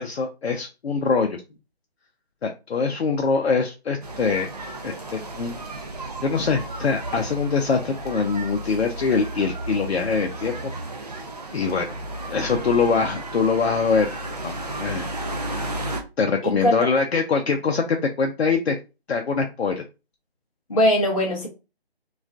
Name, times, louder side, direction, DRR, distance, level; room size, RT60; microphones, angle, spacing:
voice 1, 0.0-1.4 2.4-4.5 4.8-5.6 6.2-10.7 11.5-11.9 12.3-14.2 14.4-15.1 16.2-18.8 19.1-19.8, left 5 dB, 75° left, 0.5 m, -23 dB
sound 1, 4.0-16.0, right 1 dB, 40° right, 0.4 m, -33 dB
voice 2, 16.4-16.9 20.7-21.5, equal, 35° left, 0.6 m, -21 dB
2.4 x 2.2 x 2.4 m
figure-of-eight pair, 160°, 32 cm